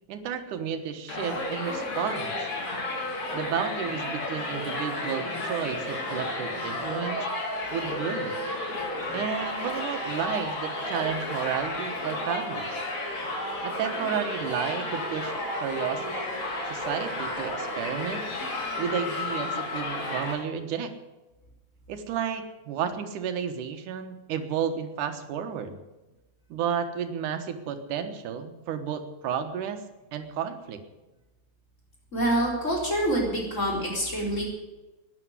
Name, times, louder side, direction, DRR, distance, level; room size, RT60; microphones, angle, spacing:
voice 1, 0.1-2.5 3.3-7.3 7.7-8.4 9.1-12.8 13.6-16.0 16.7-18.3 18.8-20.9 21.9-25.8 26.5-29.8 30.1-30.8, right 8 dB, 85° right, 7 dB, 2.8 m, -32 dB
Crowd, 1.1-20.3, left 2 dB, 65° left, 5.1 m, -32 dB
voice 2, 32.1-34.5, right 1 dB, 25° left, -2 dB, 4.4 m, -26 dB
12.5 x 10.5 x 9.6 m, 1.1 s
omnidirectional pair, 3.5 m